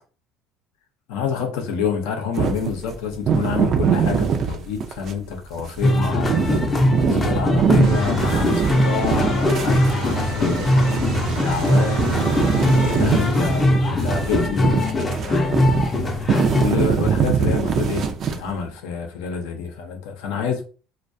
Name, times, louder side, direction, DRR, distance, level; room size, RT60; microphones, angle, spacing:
voice 1, 1.1-6.6 7.0-12.0 13.0-15.6 16.6-20.6, left 6 dB, 85° left, 0.5 m, -28 dB
sound 1, 2.4-5.2 5.6-11.7 12.0-18.6, right 7 dB, 50° right, 0.4 m, -23 dB
sound 2, 5.8-16.6, left 1 dB, 25° left, 0.4 m, -20 dB
sound 3, 7.8-13.6, right 3 dB, 70° right, 0.7 m, -30 dB
2.2 x 2.1 x 2.6 m
supercardioid pair, 105°, 0 cm